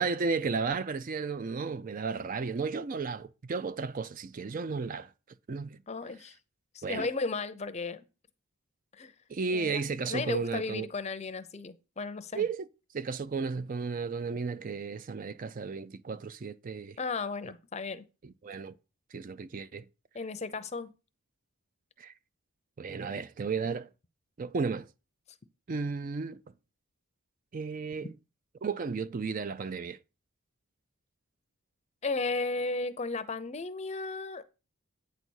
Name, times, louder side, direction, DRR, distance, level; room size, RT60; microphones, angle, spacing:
voice 1, 0.0-5.1 5.5-5.8 6.8-7.1 9.3-10.9 12.3-12.7 12.9-17.0 18.2-18.7 19.1-19.9 22.0-22.1 22.8-23.9 24.4-24.9 25.7-26.4 27.5-28.1 28.6-30.0, right 4 dB, 40° right, 0.4 m, -33 dB
voice 2, 5.9-6.4 6.7-8.0 8.9-9.1 9.5-12.4 17.0-18.0 20.1-20.9 32.0-34.4, left 3 dB, 30° left, 0.6 m, -35 dB
9.0 x 4.1 x 6.2 m
head